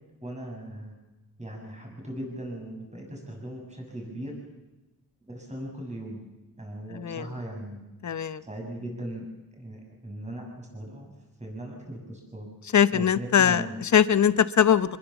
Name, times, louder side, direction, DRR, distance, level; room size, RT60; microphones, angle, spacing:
voice 1, 0.2-1.0 1.4-4.3 5.2-6.2 6.6-7.8 8.4-9.3 9.6-11.1 11.4-12.5 12.9-13.7, right 1 dB, 20° right, 0 dB, 7.4 m, -38 dB
voice 2, 6.9-7.3 8.0-8.4 12.7-15.0, left 8 dB, 50° left, 14 dB, 1.0 m, -22 dB
27.0 x 21.5 x 7.1 m, 1.1 s
wide cardioid pair, 160°, 37 cm